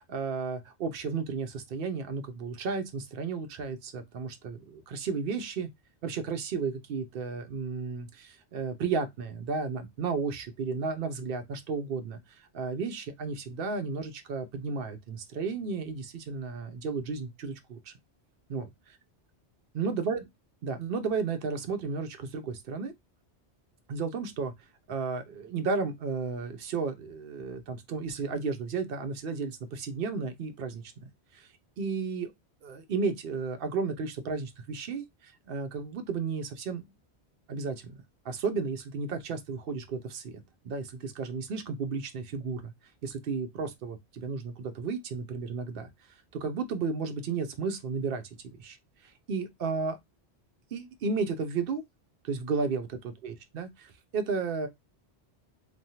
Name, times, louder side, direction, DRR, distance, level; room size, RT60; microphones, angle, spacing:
voice 1, 0.1-5.7 6.0-12.2 12.5-17.9 18.5-19.0 19.7-20.2 20.6-22.9 23.9-24.5 24.9-30.8 31.3-31.5 31.8-32.3 32.6-36.8 37.5-38.0 38.2-42.7 43.0-45.9 46.3-48.2 48.6-48.8 49.3-50.0 50.7-51.8 52.2-53.7 54.1-54.7, right 4 dB, 60° right, 0.7 m, -33 dB
3.1 x 2.2 x 2.7 m
omnidirectional pair, 1.1 m